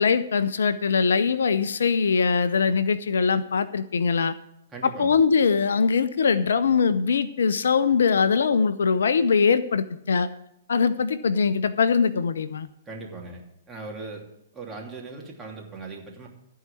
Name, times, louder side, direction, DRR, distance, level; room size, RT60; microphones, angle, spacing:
voice 1, 0.0-4.3 4.8-10.3 10.7-12.7, left 5 dB, 75° left, 14 dB, 0.6 m, -22 dB
voice 2, 4.7-5.2 12.8-13.4 13.7-14.3 14.5-16.3, right 3 dB, 15° right, -2 dB, 2.9 m, -39 dB
14.0 x 4.7 x 8.4 m, 0.78 s
hypercardioid pair, 120°, 0 cm